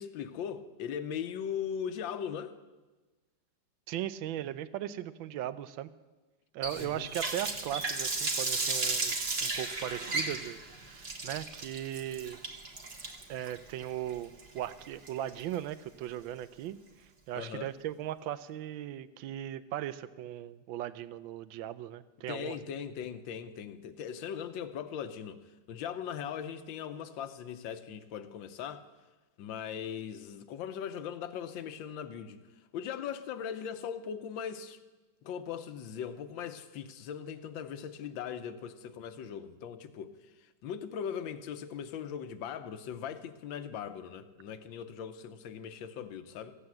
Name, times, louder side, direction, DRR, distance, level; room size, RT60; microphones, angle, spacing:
voice 1, 0.0-2.5 6.8-7.1 17.3-17.7 22.3-25.4 25.7-28.8 29.4-32.4 32.7-34.8 35.2-40.2 40.6-46.6, left 8 dB, 75° left, 1.5 m, -39 dB
voice 2, 3.9-5.9 6.5-10.6 11.2-12.4 13.3-22.6, right 12 dB, 80° right, 1.4 m, -38 dB
Water tap faucet, 6.6-15.5, right 3 dB, 35° right, 1.3 m, -34 dB
15.0 x 8.3 x 7.7 m
omnidirectional pair, 2.2 m